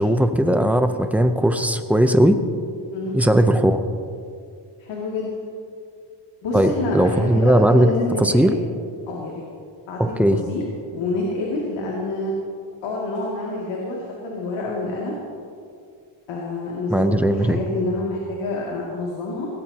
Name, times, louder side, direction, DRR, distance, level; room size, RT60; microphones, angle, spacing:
voice 1, 0.0-2.4 3.1-3.8 6.5-7.9 8.2-8.5 10.0-10.4 16.9-17.6, right 1 dB, 5° right, 7 dB, 0.7 m, -18 dB
voice 2, 4.8-5.3 6.4-8.6 9.1-9.4 9.9-10.0 10.3-10.6 10.9-12.3 12.8-15.1 16.3-19.5, left 2 dB, 90° left, -3 dB, 2.7 m, -27 dB
19.0 x 18.0 x 3.0 m, 2.3 s
cardioid pair, 140°, 45 cm